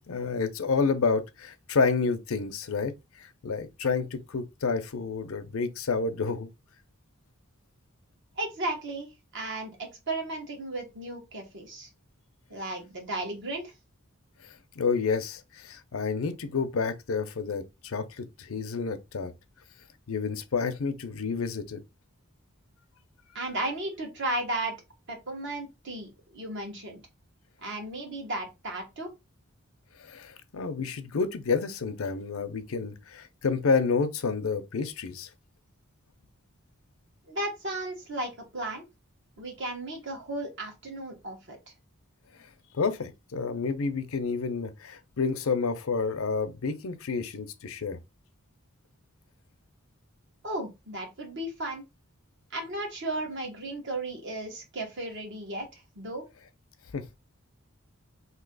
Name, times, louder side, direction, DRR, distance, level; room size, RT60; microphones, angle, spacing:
voice 1, 0.1-2.9 3.2-6.5 14.4-19.3 20.1-21.8 30.0-35.3 42.7-48.0 56.9-57.2, left 4 dB, 75° left, 0.6 m, -29 dB
voice 2, 8.4-11.9 12.5-13.7 23.3-24.8 25.1-27.0 27.6-29.1 37.3-38.8 39.4-41.6 50.4-51.8 52.5-56.2, right 2 dB, 55° right, 1.3 m, -35 dB
3.0 x 2.8 x 3.9 m
head